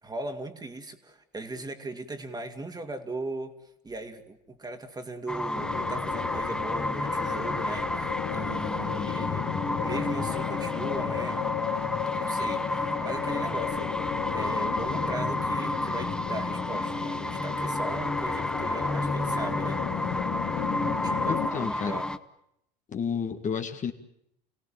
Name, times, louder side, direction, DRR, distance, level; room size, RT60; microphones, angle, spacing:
voice 1, 0.0-3.5 3.8-11.4 12.1-13.9 14.3-20.0 20.7-22.1, right 2 dB, 20° right, 6 dB, 2.6 m, -38 dB
sound 1, 5.3-22.2, left 1 dB, 5° left, 1.0 m, -31 dB
sound 2, 5.6-21.5, left 10 dB, 60° left, 2.3 m, -34 dB
voice 2, 21.3-22.0 22.9-23.9, left 7 dB, 35° left, 6 dB, 1.9 m, -31 dB
28.5 x 17.0 x 9.0 m, 0.77 s
hypercardioid pair, 80°, 21 cm